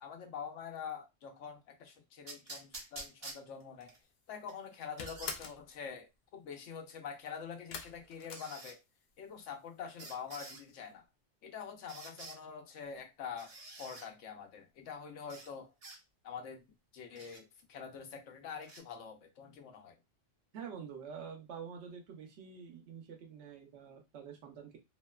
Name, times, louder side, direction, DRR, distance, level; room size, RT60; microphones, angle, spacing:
voice 1, 0.0-3.9 4.3-8.8 9.2-11.0 11.4-13.5 13.8-15.7 16.2-16.6 16.9-20.0, left 7 dB, 80° left, 1.0 m, -45 dB
sound 1, 2.3-4.0 4.5-5.4 6.9-7.0 8.3-8.8 10.0-10.6 11.9-12.4 13.4-14.1 15.3-15.5 15.8-16.0 17.2-17.4 18.6-18.8, right 2 dB, 40° right, 0.6 m, -48 dB
sound 2, 4.0-4.4 4.6-5.7 7.7-9.2 9.5-10.1 10.4-10.5 10.8-10.9, left 4 dB, 65° left, 0.4 m, -45 dB
voice 2, 20.5-24.8, right 7 dB, 70° right, 0.9 m, -47 dB
2.8 x 2.1 x 2.2 m
omnidirectional pair, 1.3 m